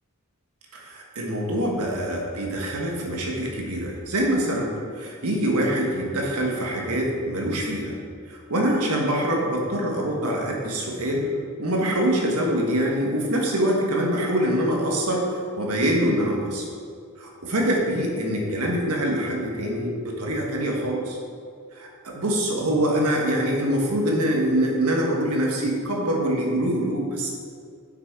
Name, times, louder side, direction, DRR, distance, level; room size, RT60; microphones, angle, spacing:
voice 1, 0.7-4.7 5.0-8.0 8.3-11.3 11.6-16.7 17.2-21.2 21.8-27.3, right 1 dB, 80° right, -1 dB, 1.5 m, -24 dB
6.9 x 6.2 x 4.7 m, 2.2 s
head